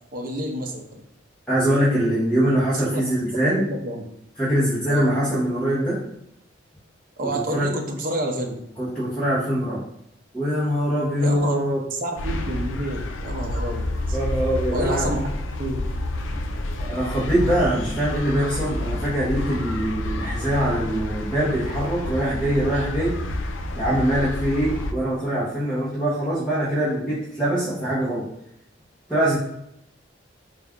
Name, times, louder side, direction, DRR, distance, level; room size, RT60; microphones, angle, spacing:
voice 1, 0.1-1.0 2.9-3.0 3.4-4.0 4.9-5.1 7.2-8.6 11.2-11.6 11.9-14.2 14.7-15.9, right 1 dB, 45° right, 1 dB, 0.6 m, -29 dB
voice 2, 1.5-3.6 4.4-6.0 7.3-7.7 8.8-9.8 10.3-11.8 14.1-15.1 16.9-23.1 23.8-28.2 29.1-29.4, right 1 dB, 5° left, -10 dB, 0.9 m, -23 dB
sound 1, 12.2-24.9, left 1 dB, 90° left, 0.4 m, -29 dB
4.0 x 2.4 x 3.5 m, 0.78 s
head